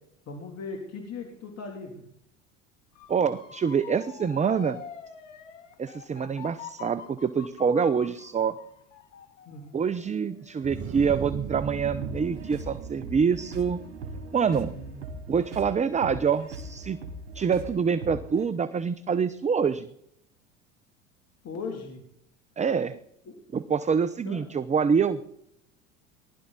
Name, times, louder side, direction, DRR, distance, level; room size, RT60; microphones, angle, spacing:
voice 1, 0.3-2.0 9.5-9.6 14.7-15.0 21.4-22.0 23.3-23.4 24.2-24.4, left 4 dB, 45° left, 2 dB, 3.2 m, -38 dB
Motor vehicle (road) / Siren, 2.9-11.9 12.3-12.7, left 8 dB, 85° left, 1.7 m, -46 dB
voice 2, 3.1-4.8 5.8-8.6 9.7-13.8 14.3-14.7 15.3-17.0 17.3-19.9 22.6-23.0 23.5-25.2, right 6 dB, 20° right, 14 dB, 0.7 m, -26 dB
sound 1, 10.6-16.1, right 7 dB, 40° right, 1.5 m, -39 dB
sound 2, 12.0-18.5, right 2 dB, 85° right, 3.0 m, -41 dB
19.0 x 12.0 x 4.1 m, 0.72 s
hypercardioid pair, 80°, 36 cm